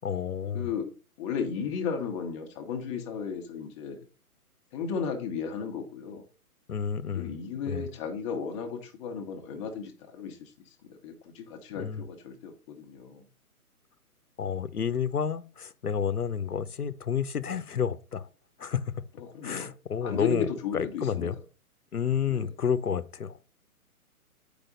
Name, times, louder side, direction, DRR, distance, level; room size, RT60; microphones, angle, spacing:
voice 1, 0.0-0.7 6.7-7.3 7.7-7.8 11.8-12.1 14.4-18.2 18.6-18.9 19.4-20.5 20.7-21.4 21.9-23.4, left 7 dB, 75° left, 0.9 m, -30 dB
voice 2, 0.5-4.0 4.7-6.2 7.2-13.3 19.2-19.7 20.0-21.4 22.3-22.5, left 6 dB, 20° left, 1.1 m, -35 dB
9.0 x 5.0 x 4.0 m
figure-of-eight pair, 125°, 45 cm